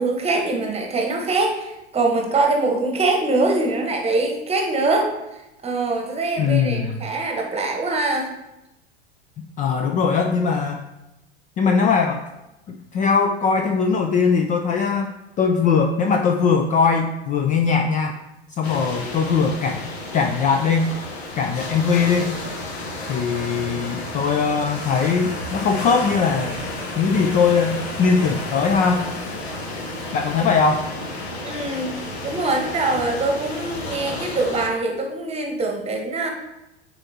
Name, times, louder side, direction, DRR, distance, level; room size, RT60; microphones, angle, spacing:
voice 1, 0.0-8.3 31.4-31.9 32.2-36.3, right 3 dB, 20° right, 2 dB, 1.2 m, -23 dB
voice 2, 6.4-7.0 9.6-10.8 11.6-12.2 12.7-15.1 15.4-18.1 18.6-19.8 20.1-20.9 21.4-22.3 23.1-26.5 27.0-29.1 30.1-30.9, left 5 dB, 25° left, 4 dB, 0.4 m, -20 dB
sound 1, 18.6-34.7, left 2 dB, 70° left, 1.3 m, -32 dB
9.6 x 4.2 x 2.9 m, 0.94 s
figure-of-eight pair, 85°, 33 cm